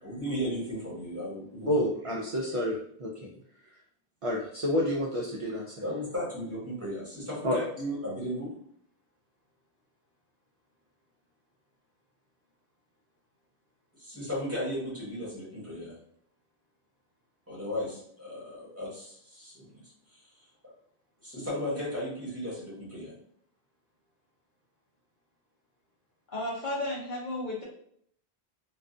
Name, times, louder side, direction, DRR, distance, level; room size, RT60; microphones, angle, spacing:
voice 1, 0.0-1.8 5.8-8.5 14.0-15.9 17.5-20.4 21.2-23.1, equal, 15° right, -7 dB, 1.0 m, -35 dB
voice 2, 1.7-3.3 4.2-5.7 7.4-7.6, equal, 55° right, -2 dB, 0.3 m, -29 dB
voice 3, 26.3-27.6, left 1 dB, 55° left, -4 dB, 0.7 m, -33 dB
2.3 x 2.3 x 2.5 m, 0.66 s
omnidirectional pair, 1.0 m